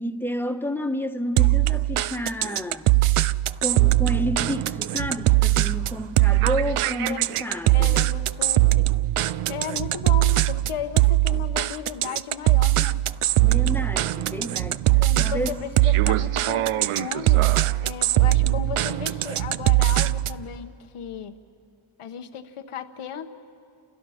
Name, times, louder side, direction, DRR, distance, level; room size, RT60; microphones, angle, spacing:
voice 1, 0.0-2.9 3.6-8.1 13.4-15.6, equal, 5° left, 1.2 m, -30 dB
sound 1, 1.4-20.4, right 16 dB, 80° right, 0.6 m, -21 dB
voice 2, 7.7-8.8 9.5-13.0 15.0-21.3 22.0-23.3, left 8 dB, 85° left, 1.1 m, -35 dB
29.0 x 29.0 x 5.7 m
cardioid pair, 75°, 50 cm